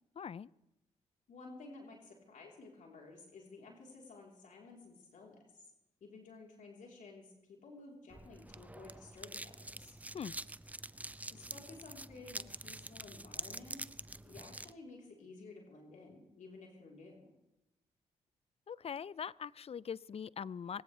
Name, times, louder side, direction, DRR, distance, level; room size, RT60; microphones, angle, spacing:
voice 1, 0.2-0.5 10.1-10.3 18.7-20.8, left 7 dB, 45° left, 21 dB, 0.5 m, -42 dB
voice 2, 1.3-5.7 6.0-10.0 11.3-13.8 14.2-17.3, left 3 dB, 60° left, -1 dB, 3.7 m, -53 dB
sound 1, 8.1-14.7, right 1 dB, 10° right, 0.6 m, -46 dB
22.5 x 17.0 x 3.3 m, 0.92 s
hypercardioid pair, 45°, 15 cm